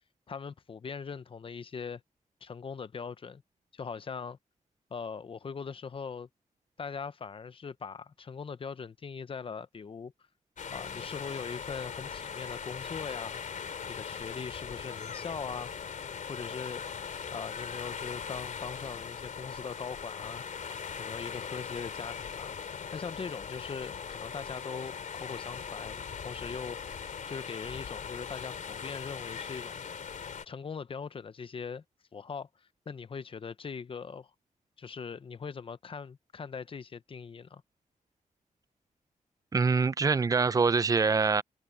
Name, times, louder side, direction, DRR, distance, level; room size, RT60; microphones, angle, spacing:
voice 1, 0.3-2.0 2.4-3.4 3.7-4.4 4.9-6.3 6.8-10.1 10.7-13.4 13.9-15.7 16.2-16.8 17.3-20.4 21.0-22.5 22.9-29.8 30.5-31.8 32.1-32.5 32.9-34.3 34.8-37.6, left 5 dB, 40° left, 0.8 m, -41 dB
sound 1, 10.6-30.5, left 6 dB, 65° left, 3.1 m, -40 dB
voice 2, 39.5-41.4, right 4 dB, 25° right, 0.5 m, -24 dB
wide cardioid pair, 145°, 14 cm